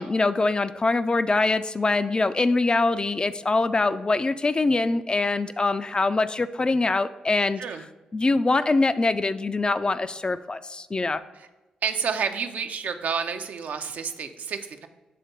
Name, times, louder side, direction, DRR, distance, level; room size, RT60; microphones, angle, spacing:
voice 1, 0.0-7.6 8.1-11.2, left 3 dB, 30° left, 12 dB, 0.3 m, -23 dB
voice 2, 11.8-14.9, right 6 dB, 65° right, 7 dB, 0.5 m, -29 dB
6.6 x 3.5 x 4.0 m, 1.1 s
hypercardioid pair, 45°, 3 cm